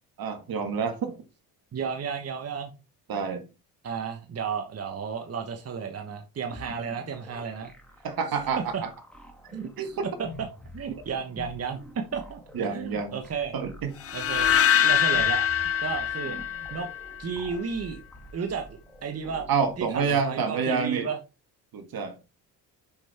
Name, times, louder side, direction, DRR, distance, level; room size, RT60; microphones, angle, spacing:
voice 1, 0.2-1.2 3.1-3.4 8.0-8.9 9.8-10.1 12.5-13.2 13.5-13.9 19.5-21.1 21.7-22.1, right 6 dB, 55° right, 2.0 m, -28 dB
voice 2, 1.7-2.7 3.8-7.7 8.7-8.8 9.5-10.3 10.7-13.5 14.1-14.5 14.8-15.5 15.8-16.4 16.7-16.9 17.2-18.0 18.3-18.7 19.0-19.5 19.8-21.2, right 6 dB, 35° right, 1.2 m, -33 dB
sound 1, 6.5-20.1, left 1 dB, 5° left, 2.0 m, -47 dB
sound 2, 14.0-17.2, left 9 dB, 35° left, 0.7 m, -24 dB
7.1 x 5.4 x 4.3 m
cardioid pair, 90°, 41 cm